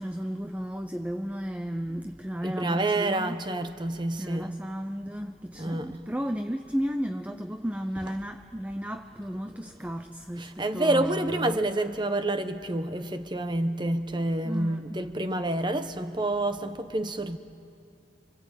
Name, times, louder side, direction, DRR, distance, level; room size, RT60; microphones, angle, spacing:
voice 1, 0.0-3.4 4.2-11.6 14.4-15.0, equal, 10° right, 0.6 m, -34 dB
voice 2, 2.4-4.6 5.5-6.0 10.4-17.4, right 2 dB, 25° right, 1.0 m, -28 dB
29.5 x 24.0 x 8.3 m
head